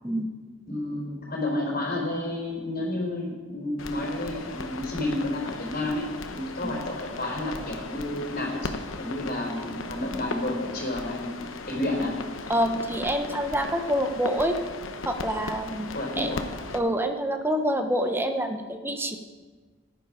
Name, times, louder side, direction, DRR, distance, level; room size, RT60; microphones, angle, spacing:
voice 1, 0.7-12.1 15.9-16.4, left 1 dB, 45° left, -2 dB, 4.2 m, -31 dB
sound 1, 3.8-16.8, left 3 dB, 80° left, 0.9 m, -37 dB
voice 2, 12.5-14.6 15.1-16.3 16.7-19.2, equal, 10° right, 5 dB, 0.9 m, -27 dB
15.0 x 10.5 x 5.1 m, 1.4 s
head